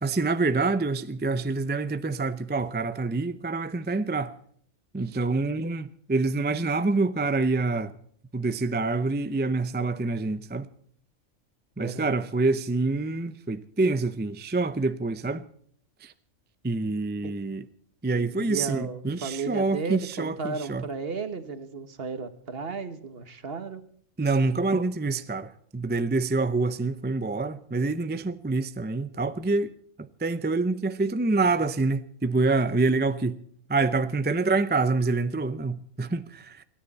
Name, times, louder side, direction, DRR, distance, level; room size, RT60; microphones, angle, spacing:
voice 1, 0.0-4.3 4.9-7.9 8.3-10.7 11.8-15.4 16.0-16.1 16.6-17.6 18.0-20.8 24.2-29.7 30.0-33.4 33.7-36.6, right 3 dB, 15° right, 0.3 m, -26 dB
voice 2, 11.8-12.2 17.2-17.3 18.2-23.8, right 4 dB, 50° right, 1.5 m, -34 dB
29.0 x 10.0 x 4.2 m
omnidirectional pair, 1.3 m